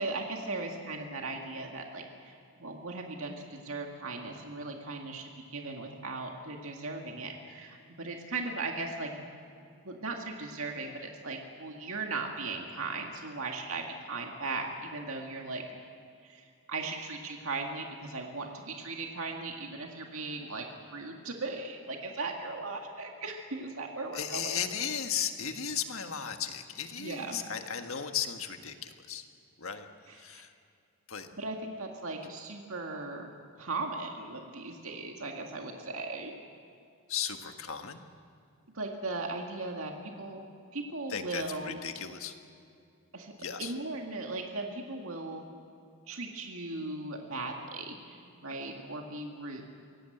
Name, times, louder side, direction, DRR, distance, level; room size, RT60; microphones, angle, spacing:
voice 1, 0.0-9.2 9.8-15.6 16.2-20.7 20.9-24.6 27.0-27.4 30.1-30.4 31.4-33.3 33.6-36.3 38.7-40.4 40.7-41.8 43.1-43.3 43.6-45.4 46.1-49.6, right 3 dB, 65° right, 2 dB, 2.0 m, -38 dB
voice 2, 24.1-29.3 29.6-29.9 30.1-30.5 31.1-31.3 37.1-38.0 41.1-42.3 43.4-43.8, left 8 dB, 65° left, 6 dB, 1.6 m, -35 dB
24.5 x 18.0 x 8.0 m, 2.5 s
head